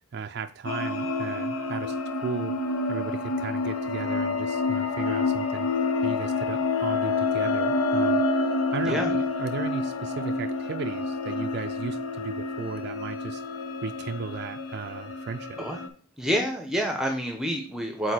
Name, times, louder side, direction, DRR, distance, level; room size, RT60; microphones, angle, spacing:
voice 1, 0.1-2.0 2.2-2.6 2.9-5.7 6.0-8.2 8.7-13.4 13.8-15.6, right 5 dB, 50° right, 6 dB, 0.3 m, -35 dB
sound 1, 0.7-15.9, left 3 dB, 80° left, 0.8 m, -28 dB
voice 2, 16.2-18.1, equal, 5° right, 3 dB, 0.7 m, -28 dB
6.4 x 4.4 x 4.3 m, 0.41 s
head